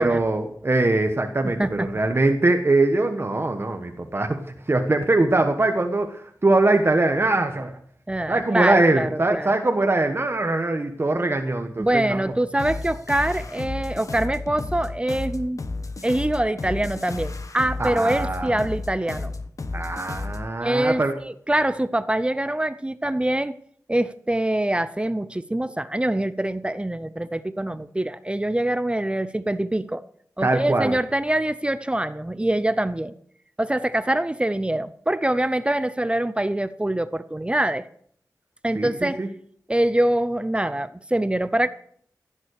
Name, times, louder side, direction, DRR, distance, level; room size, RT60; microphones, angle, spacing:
voice 1, 0.0-7.8 8.3-12.3 17.8-18.6 19.7-21.1 30.4-30.9 38.7-39.3, right 2 dB, 40° right, 5 dB, 1.2 m, -22 dB
voice 2, 1.4-1.9 8.1-9.5 11.8-15.6 16.0-19.3 20.6-23.6 23.9-30.0 30.4-33.1 33.6-37.9 38.6-39.2 39.7-41.7, right 1 dB, 15° right, 14 dB, 0.6 m, -24 dB
sound 1, 12.6-20.5, left 3 dB, 55° left, 1.2 m, -32 dB
16.0 x 7.4 x 6.5 m, 0.62 s
wide cardioid pair, 70°, 7 cm